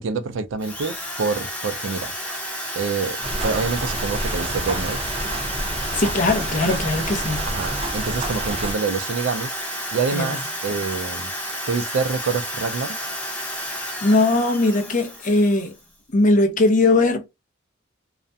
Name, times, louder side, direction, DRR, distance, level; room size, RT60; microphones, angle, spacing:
voice 1, 0.0-2.1 2.8-5.0 7.4-9.5 9.9-11.3 11.7-13.0, right 4 dB, 75° right, 0.4 m, -26 dB
Drill, 0.6-15.8, equal, 10° left, 0.8 m, -31 dB
sound 1, 3.2-8.7, right 1 dB, 30° right, 0.6 m, -29 dB
voice 2, 5.9-7.5 10.1-10.3 13.7-15.7 16.1-17.3, left 2 dB, 40° left, 0.6 m, -20 dB
2.4 x 2.1 x 2.6 m
head